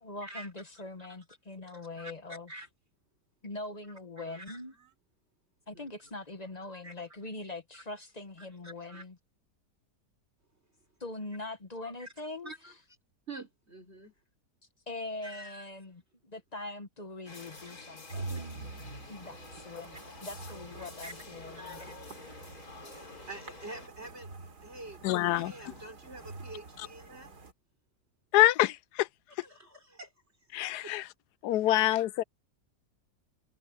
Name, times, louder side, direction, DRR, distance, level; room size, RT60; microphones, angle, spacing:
voice 1, 0.0-2.5 3.4-4.7 5.7-9.2 11.0-12.7 14.9-18.3 19.1-22.0, left 2 dB, 30° left, 0.9 m, -42 dB
voice 2, 0.7-1.1 1.7-2.7 4.2-4.9 5.7-5.9 6.8-6.9 8.4-9.0 12.0-12.1 12.4-12.7 13.3-14.1 15.2-15.7 17.3-17.4 17.7-17.8 20.8-21.1 21.5-21.9 22.8-24.3 24.6-25.0 25.3-27.3 29.4-30.1 30.8-30.9 31.7-32.0, right 2 dB, 40° right, 4.1 m, -47 dB
sound 1, 17.3-23.9, left 3 dB, 60° left, 3.8 m, -49 dB
sound 2, 18.1-27.5, right 3 dB, 65° right, 3.3 m, -46 dB
voice 3, 25.0-25.5 28.3-29.1 30.5-31.0 31.4-32.2, left 15 dB, 75° left, 1.1 m, -25 dB
omnidirectional pair, 1.8 m